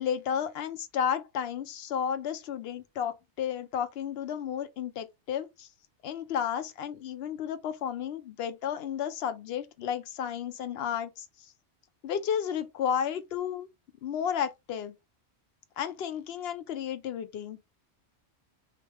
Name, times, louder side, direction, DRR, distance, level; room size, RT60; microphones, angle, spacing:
voice 1, 0.0-5.7 6.0-11.3 12.0-13.7 14.0-14.9 15.8-17.6, left 8 dB, 65° left, 0.8 m, -32 dB
4.7 x 2.2 x 3.3 m
omnidirectional pair, 1.2 m